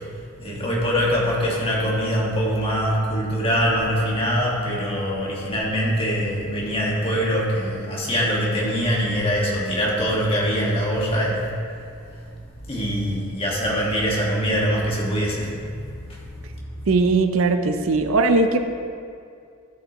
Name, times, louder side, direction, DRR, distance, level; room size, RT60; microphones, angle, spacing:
voice 1, 0.4-11.4 12.7-16.5 16.8-16.9, equal, 25° left, -4 dB, 1.7 m, -23 dB
voice 2, 16.9-18.6, right 3 dB, 70° right, 7 dB, 0.5 m, -19 dB
13.5 x 7.9 x 3.0 m, 2.4 s
head